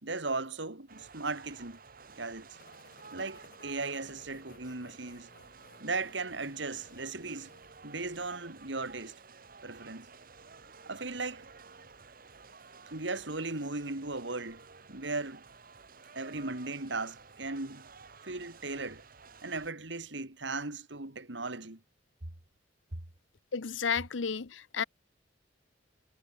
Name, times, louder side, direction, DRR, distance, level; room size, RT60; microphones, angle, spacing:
voice 1, 0.0-1.8 2.2-2.5 3.1-5.3 5.8-7.5 7.8-9.2 9.6-10.1 10.9-11.5 12.9-15.4 16.2-17.9 18.2-19.0 19.4-21.8, right 3 dB, 70° right, 2.5 m, -37 dB
sound 1, 0.9-19.7, right 4 dB, 50° right, 2.0 m, -53 dB
sound 2, 2.5-8.4, left 2 dB, 55° left, 7.8 m, -61 dB
voice 2, 23.5-24.8, left 6 dB, 85° left, 0.8 m, -32 dB
head